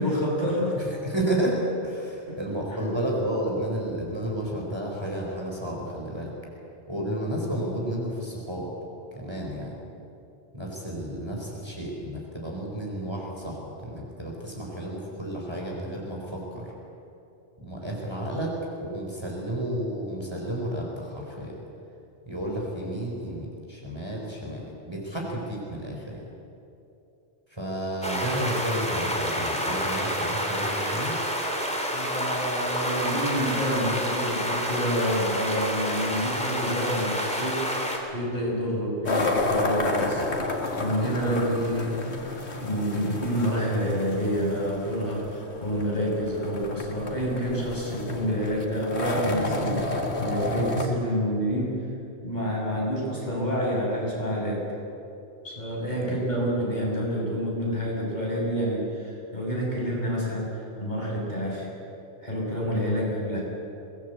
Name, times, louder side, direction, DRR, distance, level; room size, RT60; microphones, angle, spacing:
voice 1, 0.0-0.8 2.2-2.4 11.3-11.4 31.9-37.6 38.1-40.2 40.8-41.9 42.6-51.8 52.2-54.7 55.4-61.7 62.2-63.4, equal, 40° left, -4 dB, 6.6 m, -28 dB
voice 2, 0.7-6.3 6.9-8.7 9.1-9.7 10.5-16.7 17.6-21.6 22.2-26.3 27.5-31.2 56.0-56.4, right 1 dB, 20° right, -2 dB, 4.5 m, -32 dB
sound 1, 28.0-38.0, equal, 5° left, 3.3 m, -28 dB
sound 2, 39.1-50.9, left 2 dB, 70° left, 2.3 m, -31 dB
24.0 x 19.0 x 8.3 m, 2.8 s
omnidirectional pair, 1.2 m